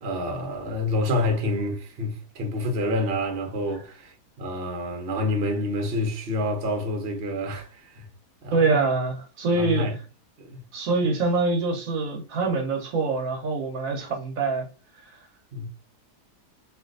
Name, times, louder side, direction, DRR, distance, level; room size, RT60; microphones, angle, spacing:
voice 1, 0.0-8.0 8.4-8.7 9.5-9.9 10.4-10.6 15.5-15.7, left 1 dB, 50° right, 0.8 m, -28 dB
voice 2, 8.5-10.0 10.7-14.7 15.0-15.1, right 3 dB, 65° right, 1.0 m, -25 dB
3.3 x 2.6 x 2.5 m
omnidirectional pair, 1.7 m